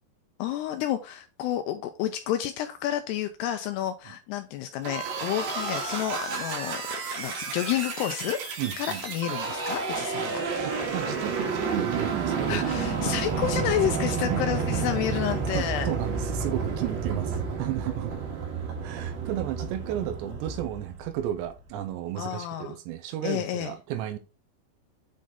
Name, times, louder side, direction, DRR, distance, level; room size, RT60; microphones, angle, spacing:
voice 1, 0.4-6.8 7.2-8.4 8.8-10.5 12.5-15.9 22.2-22.8 23.2-23.7, left 11 dB, 80° left, 2.4 m, -30 dB
sound 1, 4.8-21.5, right 5 dB, 65° right, 3.0 m, -30 dB
voice 2, 8.6-9.0 10.6-12.6 14.3-14.5 15.5-18.1 18.8-24.2, right 12 dB, 80° right, 2.9 m, -33 dB
8.5 x 3.9 x 3.6 m
omnidirectional pair, 5.2 m